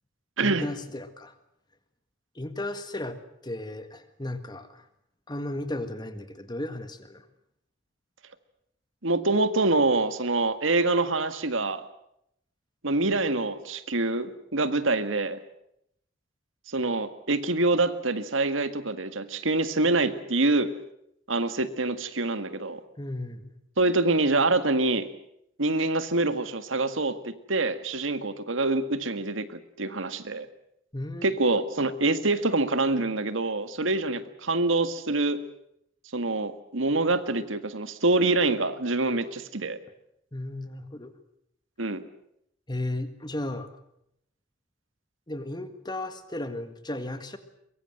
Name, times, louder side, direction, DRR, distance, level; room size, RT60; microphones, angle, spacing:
voice 1, 0.4-1.4 2.4-4.9 5.3-7.3 23.0-23.6 30.9-31.3 40.3-41.1 42.7-43.7 45.3-47.4, left 1 dB, 20° left, 9 dB, 1.8 m, -35 dB
voice 2, 9.0-11.8 12.8-15.4 16.7-20.7 21.3-22.8 23.8-25.1 25.6-30.5 31.2-35.4 36.1-39.8 41.8-42.1, right 2 dB, 80° right, 11 dB, 1.8 m, -25 dB
23.5 x 23.0 x 7.9 m, 0.77 s
head